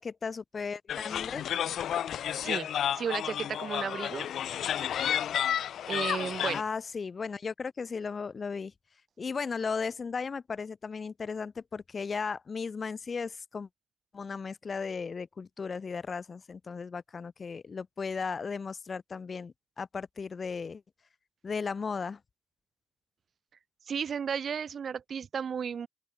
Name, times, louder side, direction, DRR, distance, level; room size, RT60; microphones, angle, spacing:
voice 1, 0.0-1.4 6.5-8.7 9.2-13.7 14.1-20.8 21.4-22.2, left 5 dB, 35° left, 4.1 m, -36 dB
sound 1, 0.9-6.6, left 10 dB, 65° left, 5.3 m, -31 dB
voice 2, 2.9-4.3 5.9-6.6 23.9-25.9, right 7 dB, 50° right, 4.0 m, -33 dB
open air
cardioid pair, 90°, 0 cm